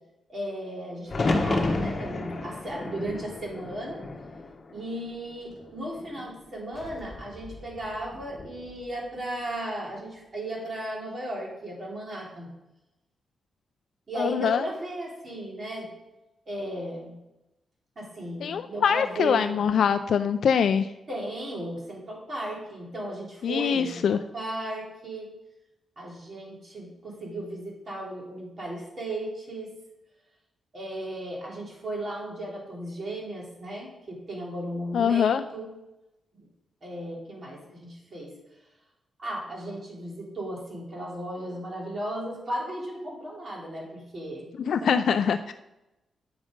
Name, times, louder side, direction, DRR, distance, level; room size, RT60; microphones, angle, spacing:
voice 1, 0.3-4.0 4.7-12.5 14.1-15.9 16.5-17.2 17.9-19.5 21.1-25.3 26.0-29.7 30.7-35.7 36.8-38.3 39.2-44.5 44.8-44.9, right 1 dB, 40° right, -3 dB, 3.3 m, -35 dB
sound 1, 1.1-5.1 5.5-6.3 8.1-8.6, left 2 dB, 40° left, 1.2 m, -30 dB
sound 2, 6.7-10.2, left 1 dB, 5° right, 3.4 m, -48 dB
voice 2, 14.2-14.6 18.4-20.9 23.4-24.2 34.9-35.4 44.7-45.5, left 7 dB, 70° left, 9 dB, 0.3 m, -23 dB
8.9 x 6.2 x 5.1 m, 0.97 s
cardioid pair, 110°, 0 cm